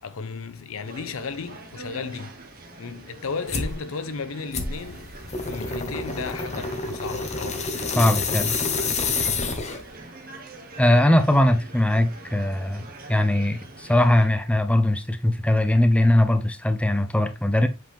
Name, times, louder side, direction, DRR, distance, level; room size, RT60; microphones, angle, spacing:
voice 1, 0.0-2.4 2.8-5.1 5.5-7.7, left 5 dB, 75° left, 0.6 m, -34 dB
sound 1, 0.8-14.3, right 2 dB, 45° right, 1.3 m, -44 dB
sound 2, 3.5-3.8 4.5-9.9, left 4 dB, 30° left, 1.0 m, -28 dB
voice 2, 8.0-8.5 10.8-17.7, left 1 dB, 5° left, 0.6 m, -20 dB
7.5 x 3.8 x 3.4 m
head